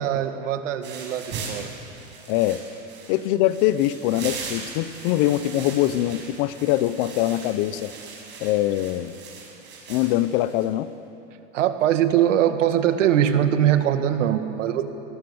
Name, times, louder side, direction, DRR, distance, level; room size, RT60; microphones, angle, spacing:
voice 1, 0.0-1.7 11.5-14.8, right 10 dB, 90° right, 7 dB, 2.1 m, -22 dB
sound 1, 0.8-10.7, right 5 dB, 30° right, 6.5 m, -39 dB
voice 2, 2.3-2.6 3.1-7.9 8.4-9.1 9.9-10.9, left 14 dB, 45° left, 15 dB, 0.9 m, -23 dB
28.5 x 19.5 x 7.2 m, 2.9 s
supercardioid pair, 155°, 36 cm